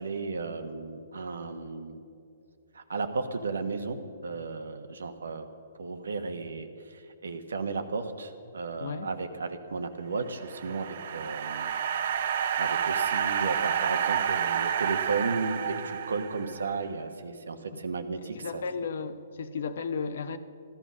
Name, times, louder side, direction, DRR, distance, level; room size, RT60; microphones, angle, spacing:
voice 1, 0.0-2.0 2.7-5.5 5.8-11.7 12.6-18.6, right 4 dB, 85° right, 1.3 m, -34 dB
sound 1, 10.3-16.7, right 8 dB, 55° right, 0.7 m, -29 dB
voice 2, 18.4-20.4, left 5 dB, 65° left, 0.9 m, -34 dB
15.0 x 12.0 x 6.2 m
hypercardioid pair, 150°, 0 cm